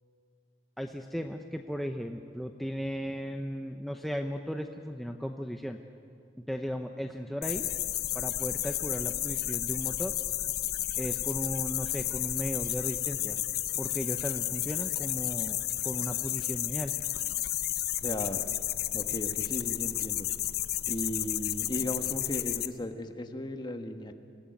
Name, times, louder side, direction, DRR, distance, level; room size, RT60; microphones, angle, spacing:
voice 1, 0.8-5.8 6.4-7.7 8.1-10.1 11.0-13.4 13.8-16.9, equal, ahead, 4 dB, 0.7 m, -36 dB
sound 1, 7.4-22.7, left 13 dB, 60° left, 0.8 m, -32 dB
voice 2, 18.0-18.4 18.9-20.3 20.9-24.1, left 1 dB, 25° left, 6 dB, 1.5 m, -36 dB
26.0 x 17.0 x 9.1 m, 2.5 s
head